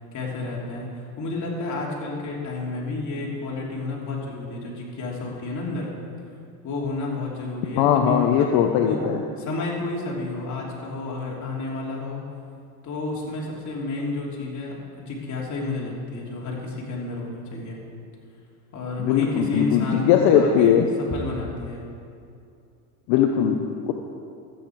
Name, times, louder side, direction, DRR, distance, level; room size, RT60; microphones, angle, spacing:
voice 1, 0.1-5.9 6.6-9.0 9.4-12.2 12.8-17.8 18.7-21.8, left 3 dB, 45° left, -3 dB, 3.2 m, -31 dB
voice 2, 7.8-9.2 19.0-20.9 23.1-23.9, left 8 dB, 70° left, 4 dB, 0.9 m, -20 dB
13.0 x 9.0 x 4.7 m, 2.5 s
supercardioid pair, 100°, 42 cm